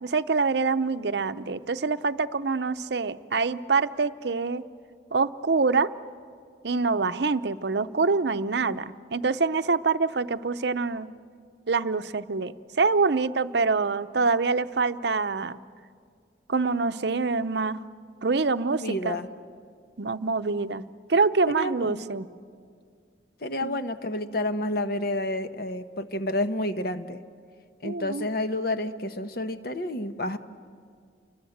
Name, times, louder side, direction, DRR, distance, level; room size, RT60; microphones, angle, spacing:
voice 1, 0.0-4.6 5.1-5.9 6.6-11.1 11.7-15.6 16.5-17.9 18.2-19.2 20.0-22.3 23.6-23.7 27.8-28.3, right 4 dB, 60° right, 11 dB, 0.7 m, -25 dB
voice 2, 18.7-19.3 21.5-22.1 23.4-27.2 27.8-30.4, left 1 dB, 55° left, 9 dB, 1.1 m, -30 dB
29.5 x 24.0 x 7.9 m, 2.1 s
head